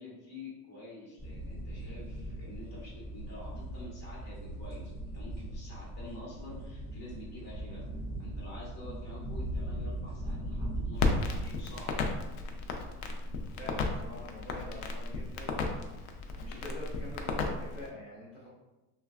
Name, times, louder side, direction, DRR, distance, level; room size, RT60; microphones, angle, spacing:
voice 1, 0.0-7.8 8.2-11.9, left 1 dB, 35° left, -6 dB, 1.2 m, -48 dB
sound 1, 1.2-11.4, right 1 dB, 15° right, 1.3 m, -39 dB
Crackle, 10.9-17.9, left 3 dB, 75° left, 0.6 m, -34 dB
voice 2, 13.6-18.5, left 1 dB, 5° left, -13 dB, 0.4 m, -46 dB
3.2 x 2.3 x 2.3 m, 1.0 s
supercardioid pair, 155°, 46 cm